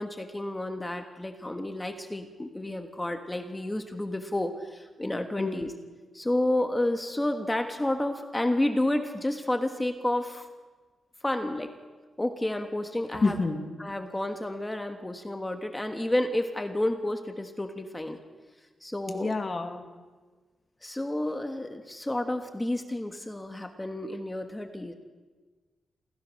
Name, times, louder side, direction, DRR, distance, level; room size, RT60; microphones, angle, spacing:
voice 1, 0.0-5.7 6.1-10.4 11.2-11.7 12.2-13.4 13.8-18.2 18.8-19.3 20.8-24.9, left 1 dB, 10° left, 6 dB, 1.4 m, -30 dB
voice 2, 13.2-13.6 19.1-19.9, left 3 dB, 30° left, 5 dB, 2.1 m, -28 dB
27.5 x 16.0 x 6.4 m, 1.4 s
wide cardioid pair, 155°, 0 cm